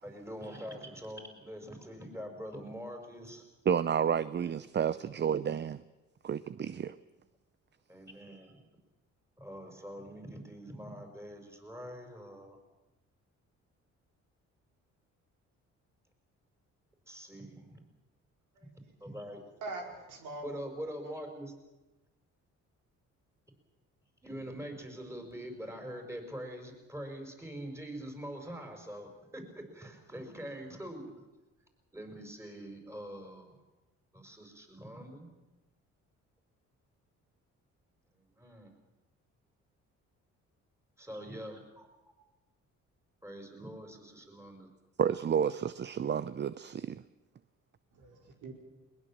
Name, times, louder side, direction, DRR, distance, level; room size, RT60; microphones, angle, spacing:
voice 1, 0.0-3.4 7.9-8.6 9.4-12.6 17.1-17.8 19.0-19.4 20.4-21.5 24.2-31.1 31.9-33.5 34.1-35.3 38.1-38.7 41.0-42.1 43.2-44.7, equal, 10° right, 4 dB, 5.4 m, -44 dB
voice 2, 3.7-5.8 6.2-6.9 45.0-47.0, right 8 dB, 35° right, 15 dB, 0.6 m, -30 dB
voice 3, 19.6-20.5 21.0-21.1 47.9-48.5, right 2 dB, 80° right, 1 dB, 4.8 m, -42 dB
21.5 x 20.5 x 7.4 m, 1.1 s
cardioid pair, 90°, 30 cm